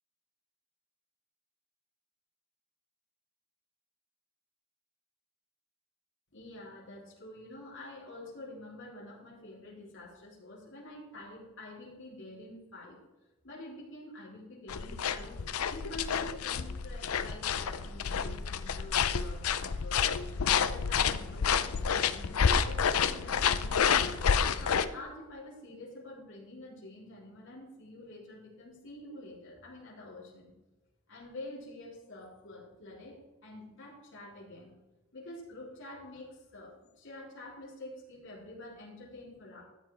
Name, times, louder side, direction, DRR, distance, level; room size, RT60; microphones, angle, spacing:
voice 1, 6.3-13.0 13.4-15.4 15.7-20.0 20.4-24.1 24.6-30.5 31.1-34.7 35.1-39.6, left 1 dB, 60° left, -5 dB, 3.8 m, -47 dB
sound 1, 14.7-24.9, left 7 dB, 80° left, 0.5 m, -29 dB
13.5 x 8.2 x 3.6 m, 1.1 s
head